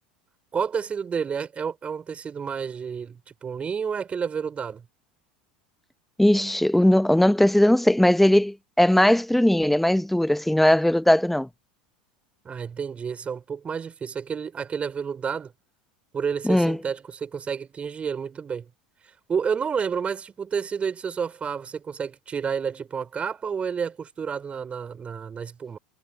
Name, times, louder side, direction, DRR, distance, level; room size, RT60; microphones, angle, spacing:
voice 1, 0.5-4.8 12.4-15.5 16.1-18.7 19.3-25.8, right 6 dB, 25° right, 4.9 m, -30 dB
voice 2, 6.2-11.5 16.4-16.8, left 1 dB, 5° left, 0.8 m, -19 dB
hypercardioid pair, 95°, 5 cm